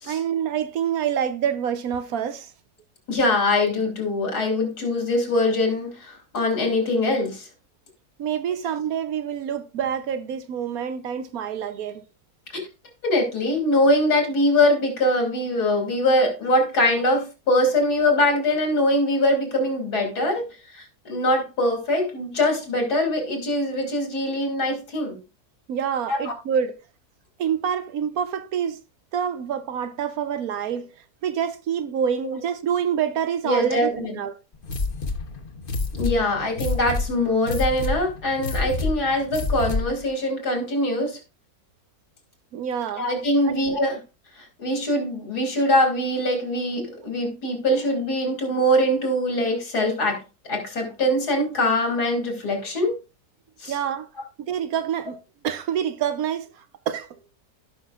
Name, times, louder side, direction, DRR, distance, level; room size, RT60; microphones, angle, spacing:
voice 1, 0.1-2.5 8.2-12.0 25.7-26.8 27.4-28.8 29.1-30.9 31.2-34.4 42.5-43.1 53.7-54.1 54.4-55.2 55.4-57.1, right 8 dB, 70° right, 1.2 m, -27 dB
voice 2, 3.1-7.5 12.5-12.6 13.0-20.5 20.7-25.2 26.1-26.2 33.4-34.1 36.0-41.2 42.9-44.0 44.4-50.2 50.5-53.0 53.6-53.7, left 1 dB, 85° left, 3.2 m, -23 dB
sound 1, 34.6-40.0, left 3 dB, 40° left, 1.1 m, -28 dB
16.0 x 5.8 x 2.4 m
omnidirectional pair, 1.7 m